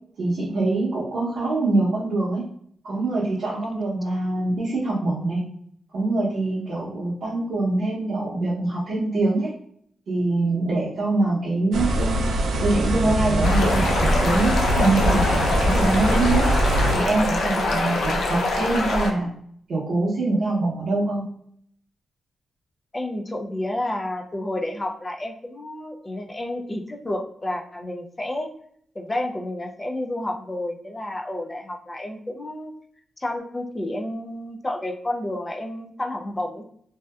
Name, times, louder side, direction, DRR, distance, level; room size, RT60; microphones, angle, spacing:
voice 1, 0.2-2.4 2.8-5.4 5.9-9.5 10.1-12.2 12.6-16.5 16.9-19.3 19.7-21.2, right 2 dB, 60° right, -9 dB, 0.7 m, -24 dB
sound 1, 11.7-16.9, right 1 dB, 80° right, 0.3 m, -22 dB
sound 2, 13.4-19.1, left 2 dB, 85° left, 0.4 m, -24 dB
voice 2, 22.9-28.5 29.0-32.7 33.2-36.6, left 1 dB, 20° left, 3 dB, 0.3 m, -30 dB
2.6 x 2.1 x 2.2 m, 0.64 s
wide cardioid pair, 150°, 0 cm